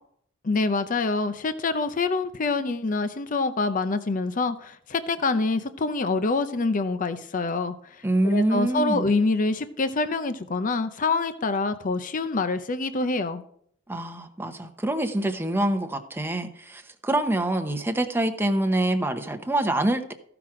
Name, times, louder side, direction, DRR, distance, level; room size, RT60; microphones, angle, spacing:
voice 1, 0.4-7.8 8.2-13.4, left 3 dB, 45° left, 11 dB, 0.6 m, -26 dB
voice 2, 8.0-9.0 13.9-20.1, right 1 dB, 10° right, 6 dB, 0.9 m, -25 dB
14.5 x 6.0 x 4.9 m, 0.65 s
head